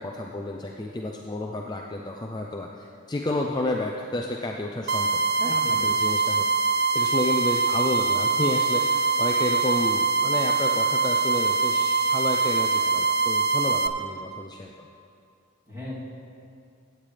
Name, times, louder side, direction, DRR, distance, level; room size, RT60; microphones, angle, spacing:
voice 1, 0.0-6.5 6.7-14.9, left 2 dB, 20° left, 0 dB, 0.4 m, -31 dB
sound 1, 4.9-13.9, right 4 dB, 50° right, 0.4 m, -23 dB
voice 2, 5.4-6.0 15.7-15.9, left 1 dB, 15° right, -9 dB, 2.9 m, -37 dB
15.5 x 8.8 x 3.3 m, 2.5 s
head